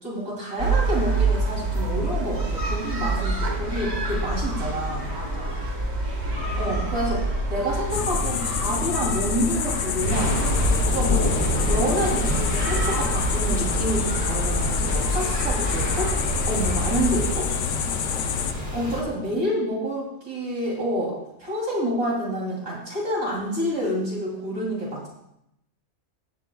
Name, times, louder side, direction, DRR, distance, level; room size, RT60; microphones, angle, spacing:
voice 1, 0.0-5.1 6.6-10.4 10.9-11.2 11.6-16.1 16.4-17.5 18.7-25.1, equal, 90° right, -4 dB, 3.3 m, -28 dB
sound 1, 0.6-17.3, right 2 dB, 50° right, 1.9 m, -27 dB
voice 2, 5.0-5.7 17.7-18.0 19.0-19.4, equal, 20° right, -5 dB, 2.9 m, -42 dB
sound 2, 7.9-18.5, left 9 dB, 70° left, 0.9 m, -28 dB
Thunder / Rain, 10.1-19.0, left 1 dB, 10° left, 1.6 m, -29 dB
15.0 x 9.2 x 2.2 m, 0.81 s
omnidirectional pair, 1.4 m